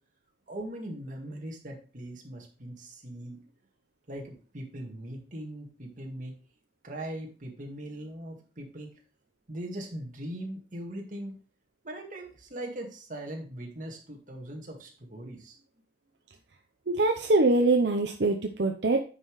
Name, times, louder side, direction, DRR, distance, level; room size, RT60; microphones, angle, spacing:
voice 1, 0.5-3.4 4.1-6.3 6.8-8.9 9.5-11.4 11.8-15.6, right 1 dB, 45° right, 1 dB, 1.8 m, -40 dB
voice 2, 16.9-19.0, right 2 dB, 70° right, 4 dB, 0.7 m, -23 dB
9.5 x 5.6 x 3.1 m, 0.37 s
head